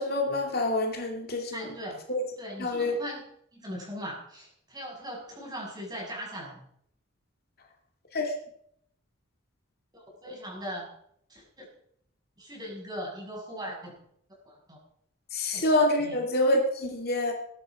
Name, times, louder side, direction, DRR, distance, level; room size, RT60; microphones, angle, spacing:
voice 1, 0.0-1.6 2.1-2.2 2.6-3.0 8.1-8.3 15.3-17.3, left 1 dB, 45° left, 2 dB, 2.5 m, -26 dB
voice 2, 1.5-2.0 2.4-3.2 3.5-6.7 9.9-10.9 11.3-11.7 12.4-13.9 14.5-14.8 15.5-15.6 16.0-16.2, equal, 20° right, -2 dB, 6.8 m, -39 dB
21.0 x 11.0 x 5.0 m, 0.69 s
head